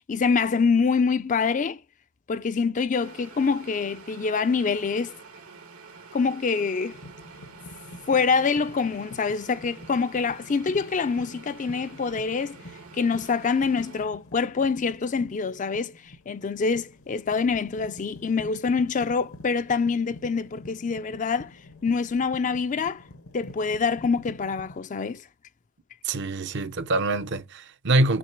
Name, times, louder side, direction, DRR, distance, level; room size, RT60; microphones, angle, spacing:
voice 1, 0.1-1.8 2.3-5.2 6.1-7.0 8.1-12.6 12.9-21.5 21.8-23.0 23.3-25.3, left 5 dB, 35° left, 0.4 m, -25 dB
sound 1, 2.9-14.0, right 4 dB, 85° right, 2.1 m, -47 dB
sound 2, 6.9-24.8, left 1 dB, 65° left, 0.8 m, -47 dB
voice 2, 26.0-28.2, right 2 dB, 55° right, 0.7 m, -24 dB
6.0 x 3.7 x 5.7 m
head